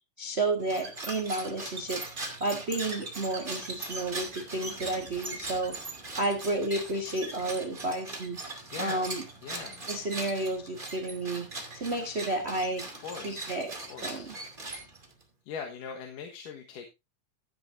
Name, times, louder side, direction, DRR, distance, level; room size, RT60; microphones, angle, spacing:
voice 1, 0.2-2.0 2.4-5.8 6.2-8.4 8.8-9.2 9.9-11.5 11.7-12.8 13.2-13.7 14.0-14.3, right 2 dB, 45° right, 5 dB, 0.8 m, -31 dB
sound 1, 0.6-15.2, right 2 dB, 15° right, 2.3 m, -40 dB
voice 2, 8.7-9.1 9.4-9.9 13.0-13.5 13.9-14.3 15.5-16.9, left 6 dB, 85° left, 3 dB, 2.9 m, -41 dB
15.0 x 9.8 x 2.6 m, 0.23 s
omnidirectional pair, 3.7 m